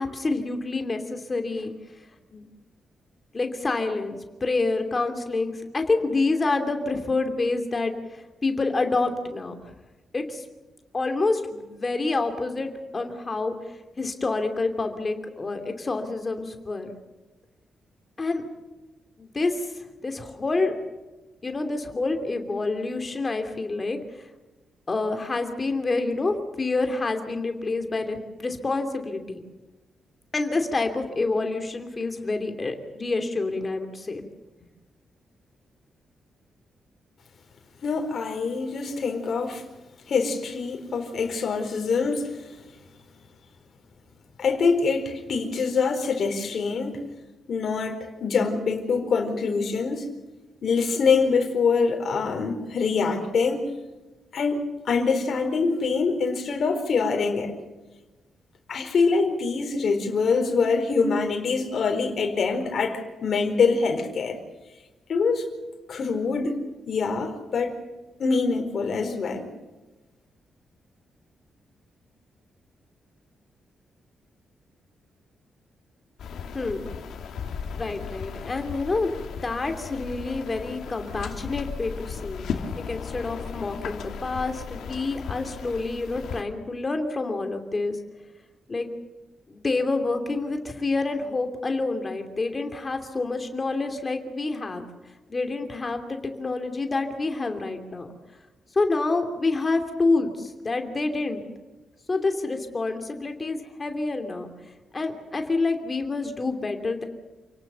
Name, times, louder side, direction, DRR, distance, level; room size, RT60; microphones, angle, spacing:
voice 1, 0.0-1.7 2.3-2.4 3.3-7.9 8.4-9.6 10.1-10.4 10.9-13.5 14.0-16.9 18.2-18.4 19.2-19.7 20.0-20.7 21.4-24.0 24.9-29.4 30.3-34.2 76.5-76.8 77.8-79.1 79.4-82.5 82.7-88.0 88.7-88.9 89.5-94.8 95.3-98.1 98.7-101.5 102.1-104.5 104.9-107.0, left 3 dB, 25° left, 6 dB, 2.7 m, -27 dB
voice 2, 37.8-39.6 40.1-42.5 44.4-47.0 47.5-50.1 50.6-53.7 54.3-57.5 58.7-64.4 65.1-65.5 65.9-67.8 68.2-69.5, left 4 dB, 50° left, 4 dB, 4.3 m, -24 dB
sound 1, 76.2-86.4, left 6 dB, 80° left, 2.5 m, -36 dB
29.0 x 18.0 x 6.9 m, 1.1 s
wide cardioid pair, 175°, 0 cm